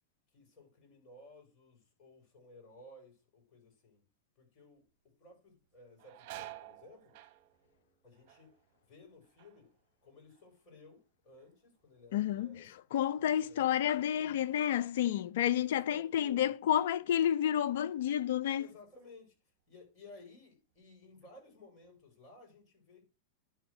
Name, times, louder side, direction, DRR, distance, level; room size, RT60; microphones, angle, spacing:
voice 1, 0.3-4.0 4.4-7.2 8.0-8.5 8.8-9.7 10.0-12.7 13.4-13.8 15.5-16.5 18.6-19.4 19.7-23.0, left 2 dB, 35° left, 5.4 m, -57 dB
sound 1, 4.8-5.1 5.5-11.1 11.4-12.0 12.5-15.4 15.7-15.8 16.8-17.0 17.5-18.6 19.0-19.2 19.8-20.4 20.7-21.9, right 15 dB, 55° right, 1.0 m, -54 dB
voice 2, 12.1-12.6 12.9-18.6, left 10 dB, 65° left, 0.5 m, -30 dB
10.5 x 3.6 x 6.2 m
hypercardioid pair, 100°, 0 cm